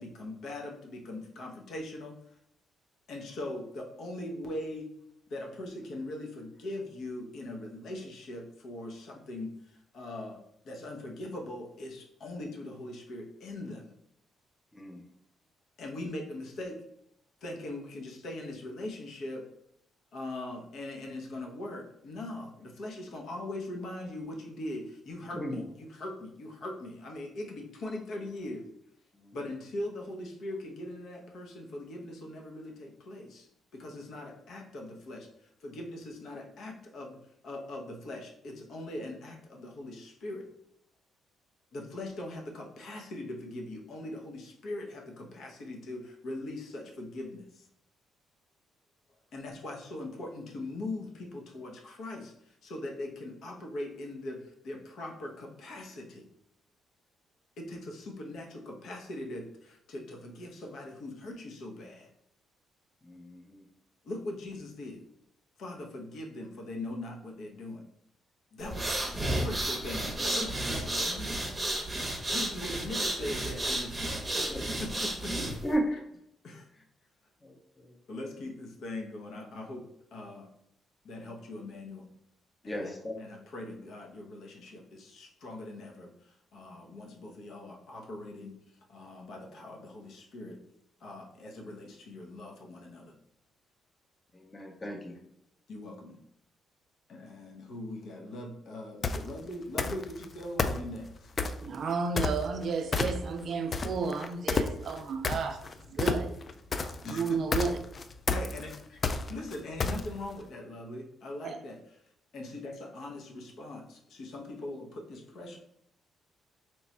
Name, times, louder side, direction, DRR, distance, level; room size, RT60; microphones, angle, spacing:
voice 1, 0.0-2.2 3.1-4.9 5.3-13.9 15.8-16.8 17.4-19.4 20.1-28.7 29.3-37.2 37.4-40.5 41.7-47.7 49.3-56.2 57.6-62.1 64.0-65.0 65.6-67.8 68.5-71.3 72.3-75.5 76.4-76.7 78.1-79.8 80.1-80.5 81.0-82.1 82.6-88.6 88.9-90.6 91.0-93.2 94.8-94.9 95.7-96.2 97.1-101.3 107.0-107.4 108.3-109.0 109.3-111.8 112.3-115.6, left 1 dB, 70° left, 0.8 m, -41 dB
voice 2, 25.3-25.6 29.1-29.4 63.0-63.6 74.3-74.8 75.6-75.9 77.4-77.6 77.8-77.9 82.6-83.2 94.3-95.2, equal, 20° left, 0.7 m, -35 dB
sound 1, 68.6-75.7, right 1 dB, 20° right, 0.8 m, -32 dB
sound 2, 99.0-99.3 99.8-100.2 100.6-101.7 102.2-102.6 102.9-103.4 103.7-110.3, left 4 dB, 40° left, 0.3 m, -30 dB
voice 3, 101.6-106.3 107.1-107.8 111.4-111.6, right 4 dB, 55° right, 0.4 m, -32 dB
3.1 x 2.3 x 4.1 m
cardioid pair, 95°, 0 cm